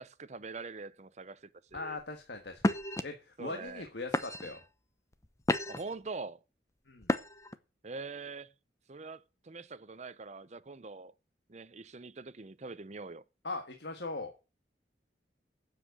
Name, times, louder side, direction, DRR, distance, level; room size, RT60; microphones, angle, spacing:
voice 1, 0.0-2.0 3.4-3.8 5.7-6.4 7.8-8.5 8.9-11.1 11.5-13.2, right 3 dB, 40° right, 0.7 m, -44 dB
voice 2, 1.7-2.7 3.0-4.6 6.9-7.1 13.4-14.3, left 3 dB, 70° left, 1.5 m, -40 dB
sound 1, 1.7-2.0 2.6-3.0 3.7-3.8 4.1-4.6 5.1-5.9 7.0-7.6, left 1 dB, 15° left, 0.7 m, -31 dB
9.2 x 7.5 x 8.1 m
head